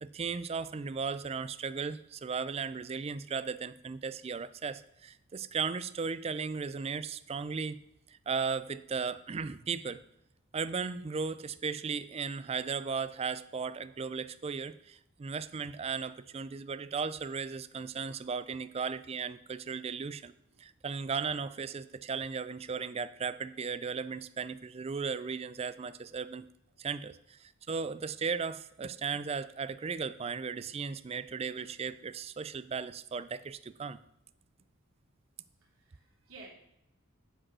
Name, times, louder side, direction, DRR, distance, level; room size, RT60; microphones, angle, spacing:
voice 1, 0.0-10.0 10.5-20.3 20.6-26.5 26.8-34.0, right 5 dB, 30° right, 15 dB, 0.3 m, -36 dB
voice 2, 35.6-36.5, right 3 dB, 80° right, -3 dB, 3.1 m, -53 dB
9.9 x 5.3 x 6.1 m, 0.83 s
head